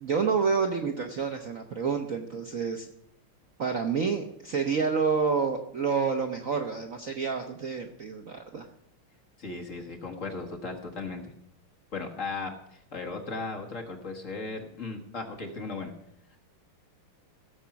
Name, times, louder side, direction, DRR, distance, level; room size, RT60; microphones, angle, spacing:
voice 1, 0.0-2.9 3.6-8.7, right 5 dB, 55° right, 4 dB, 1.0 m, -28 dB
voice 2, 9.4-11.3 11.9-15.9, left 3 dB, 40° left, 3 dB, 1.6 m, -36 dB
16.5 x 7.2 x 5.8 m, 0.75 s
omnidirectional pair, 2.3 m